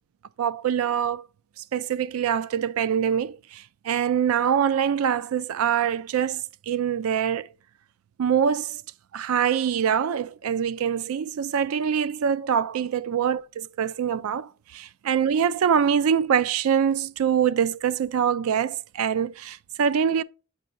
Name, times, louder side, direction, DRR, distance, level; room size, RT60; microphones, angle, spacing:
voice 1, 0.4-1.2 1.7-7.5 8.2-8.8 9.1-20.2, right 8 dB, 80° right, 0.4 m, -24 dB
8.0 x 5.4 x 2.5 m
head